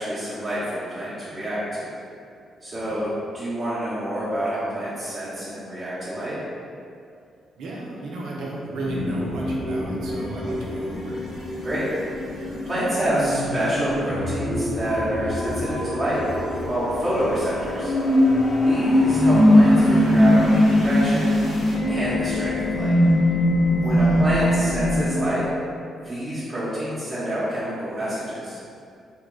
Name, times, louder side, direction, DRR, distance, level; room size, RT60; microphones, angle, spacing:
voice 1, 0.0-1.9 2.6-6.4 11.6-11.9 12.3-16.2 16.6-17.9 18.6-21.4 21.9-22.9 23.8-25.5 26.0-28.6, right 1 dB, 35° right, -11 dB, 1.0 m, -27 dB
voice 2, 2.7-3.1 7.5-11.2 23.8-24.6, right 2 dB, 75° right, -4 dB, 0.6 m, -34 dB
sound 1, 8.8-25.1, left 1 dB, 70° left, 0.9 m, -21 dB
2.8 x 2.3 x 3.8 m, 2.4 s
supercardioid pair, 50°, 0 cm